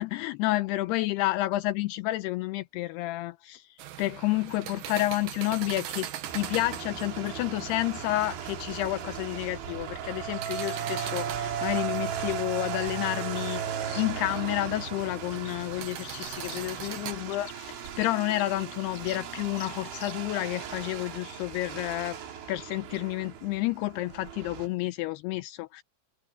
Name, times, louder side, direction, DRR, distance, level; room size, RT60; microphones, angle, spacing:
voice 1, 0.0-3.7 4.0-22.2 22.5-25.8, left 17 dB, 90° left, 2.3 m, -30 dB
sound 1, 3.8-17.1, right 12 dB, 65° right, 2.4 m, -42 dB
sound 2, 5.6-24.9, left 4 dB, 50° left, 8.4 m, -53 dB
snowmobiles driving around and pull away far, 6.3-24.7, right 8 dB, 85° right, 5.3 m, -37 dB
omnidirectional pair, 5.2 m